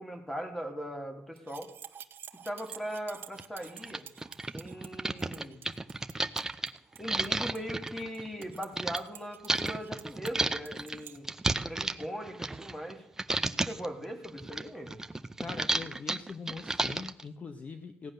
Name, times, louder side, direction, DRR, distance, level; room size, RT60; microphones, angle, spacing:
voice 1, 0.0-1.7 2.4-4.1 4.5-5.6 7.0-11.3 11.6-13.1 13.7-14.9, equal, 10° left, 5 dB, 2.3 m, -39 dB
sound 1, 1.4-11.2, right 9 dB, 55° right, 0.9 m, -50 dB
sound 2, 2.7-2.8 3.4-3.5 3.8-9.0 9.5-12.9 13.2-13.9 14.2-17.2, right 2 dB, 10° right, 0.6 m, -32 dB
voice 2, 15.4-18.1, left 4 dB, 35° left, 9 dB, 0.8 m, -42 dB
16.5 x 9.6 x 6.5 m, 0.79 s
cardioid pair, 150°, 4 cm